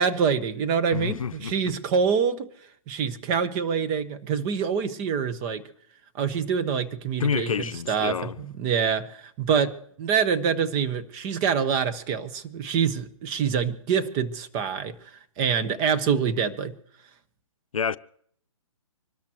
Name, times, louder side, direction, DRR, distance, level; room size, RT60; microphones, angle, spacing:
voice 1, 0.0-2.5 2.9-5.6 6.1-15.0 15.4-16.7, right 6 dB, 25° right, 1.2 m, -26 dB
voice 2, 0.9-1.5 7.2-8.4 17.7-18.0, left 6 dB, 75° left, 0.6 m, -28 dB
26.0 x 13.0 x 3.1 m
hypercardioid pair, 140°, 17 cm